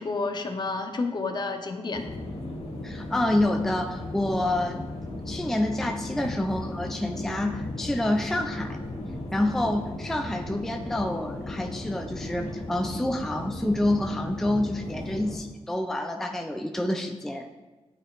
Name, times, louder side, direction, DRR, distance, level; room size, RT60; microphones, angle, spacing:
voice 1, 0.0-2.1, left 3 dB, 40° left, 6 dB, 0.6 m, -30 dB
sound 1, 1.9-15.4, left 2 dB, 70° left, 1.3 m, -36 dB
voice 2, 2.8-4.8 5.3-8.8 9.3-17.5, left 1 dB, 5° left, 4 dB, 0.3 m, -28 dB
9.9 x 4.5 x 2.4 m, 1.2 s
wide cardioid pair, 95°, 11 cm